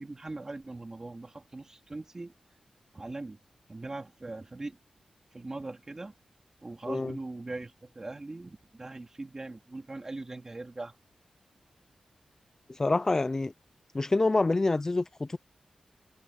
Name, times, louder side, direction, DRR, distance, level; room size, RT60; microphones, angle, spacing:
voice 1, 0.0-2.3 2.9-3.4 3.7-4.8 5.3-6.1 6.6-10.9, right 2 dB, 25° right, 3.2 m, -40 dB
voice 2, 12.8-13.5 13.9-15.4, left 2 dB, 25° left, 0.6 m, -26 dB
wide cardioid pair, 110°, 2 cm